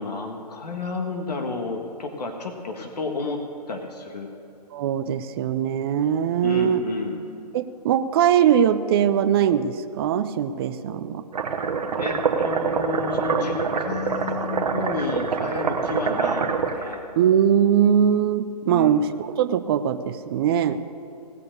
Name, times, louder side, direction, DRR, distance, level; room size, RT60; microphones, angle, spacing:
voice 1, 0.0-3.4 3.7-4.3 6.4-7.2 11.9-17.0 18.6-18.9, left 3 dB, 70° left, 3 dB, 1.6 m, -31 dB
voice 2, 4.7-6.8 7.5-11.2 17.2-20.8, right 9 dB, 35° right, 10 dB, 0.5 m, -21 dB
sound 1, 11.3-17.0, right 5 dB, 70° right, 1.2 m, -25 dB
18.0 x 6.7 x 6.6 m, 2.5 s
hypercardioid pair, 135°, 21 cm